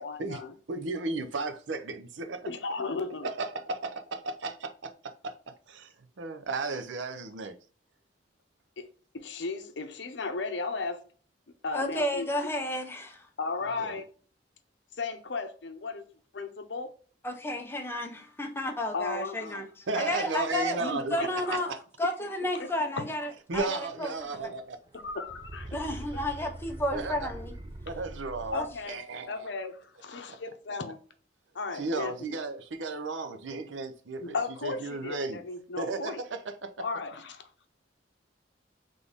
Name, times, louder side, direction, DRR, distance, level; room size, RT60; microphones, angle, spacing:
voice 1, 0.0-0.5 2.5-3.3 8.8-8.9 9.1-11.0 11.6-12.3 13.4-14.0 15.0-16.0 16.3-16.9 18.9-19.7 20.7-21.6 22.5-22.9 24.9-25.7 28.5-29.0 29.3-31.0 31.5-32.4 34.2-36.2 36.8-37.4, left 4 dB, 70° left, 0.7 m, -35 dB
voice 2, 0.7-2.4 3.2-3.8 4.1-5.3 5.7-5.9 6.2-7.6 13.8-14.0 19.9-21.2 21.5-21.8 23.5-24.8 26.9-27.2 27.9-29.3 31.7-34.4 34.6-35.4 35.8-36.8, right 3 dB, 90° right, 0.6 m, -34 dB
voice 3, 11.7-13.3 17.2-21.7 22.0-24.5 25.7-27.5 28.5-28.7, left 1 dB, 15° left, 0.7 m, -32 dB
sound 1, 23.5-23.6 24.0-24.6 24.9-28.8, right 1 dB, 25° right, 0.4 m, -43 dB
4.0 x 3.3 x 3.5 m
head